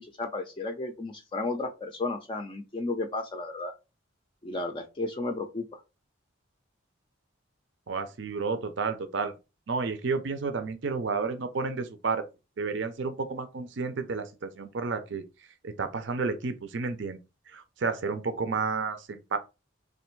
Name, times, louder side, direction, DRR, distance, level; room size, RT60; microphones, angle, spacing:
voice 1, 0.0-3.7 4.4-5.8, left 2 dB, 25° left, 0.4 m, -33 dB
voice 2, 7.9-9.4 9.7-12.2 12.6-17.2 17.5-19.4, right 4 dB, 60° right, 0.5 m, -31 dB
3.3 x 2.5 x 4.5 m
head